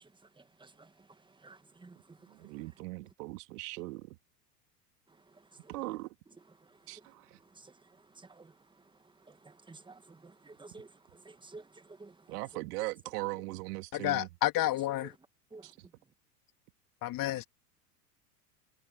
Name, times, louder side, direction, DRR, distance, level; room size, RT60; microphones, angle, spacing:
voice 1, 0.4-0.9 1.4-2.2 5.6-5.7 7.6-7.7 8.2-8.5 9.3-12.2 15.5-15.7, right 3 dB, 10° right, 1.7 m, -52 dB
voice 2, 2.2-4.2 5.7-6.1 6.9-7.4 12.3-14.3 15.6-15.8, right 21 dB, 65° right, 3.0 m, -39 dB
voice 3, 13.9-15.1 17.0-17.4, left 15 dB, 40° left, 3.0 m, -30 dB
hypercardioid pair, 95°, 49 cm